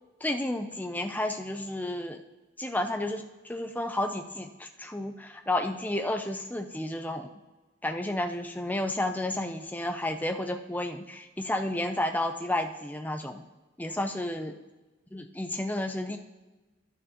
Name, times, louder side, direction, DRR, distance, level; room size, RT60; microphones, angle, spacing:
voice 1, 0.2-2.2 2.6-7.3 7.8-13.4 13.8-14.5 15.1-16.2, left 1 dB, 10° left, 6 dB, 0.5 m, -31 dB
11.5 x 6.4 x 3.0 m, 1.2 s
head